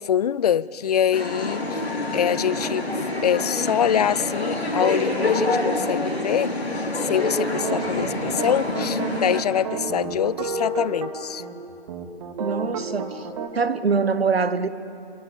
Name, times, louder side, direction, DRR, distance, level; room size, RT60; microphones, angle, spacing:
voice 1, 0.0-1.6 2.1-6.6 7.0-11.4, left 9 dB, 40° left, 0.5 m, -24 dB
sound 1, 1.1-9.4, left 2 dB, 90° left, 3.6 m, -26 dB
sound 2, 7.5-11.1 11.4-11.5 11.9-13.5, right 4 dB, 35° right, 2.3 m, -30 dB
voice 2, 12.4-13.3 13.5-14.7, right 5 dB, 75° right, 1.3 m, -23 dB
27.0 x 24.0 x 7.0 m
figure-of-eight pair, 135°, 31 cm